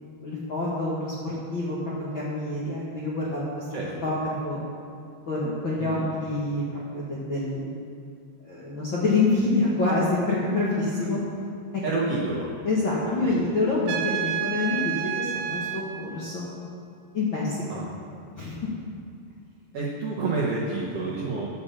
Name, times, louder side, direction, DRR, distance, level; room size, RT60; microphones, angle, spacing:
voice 1, 0.2-1.8 2.1-3.7 4.0-4.6 5.3-7.7 8.4-11.2 12.6-16.5 17.1-17.6 18.4-18.5, left 2 dB, 55° left, -7 dB, 1.4 m, -27 dB
voice 2, 5.8-6.1 11.8-12.5 13.0-13.6 17.7-17.9 19.7-21.5, right 3 dB, 65° right, -5 dB, 1.5 m, -29 dB
Trumpet, 13.9-15.9, right 10 dB, 85° right, 2.6 m, -29 dB
9.6 x 8.7 x 6.9 m, 2.5 s
omnidirectional pair, 4.4 m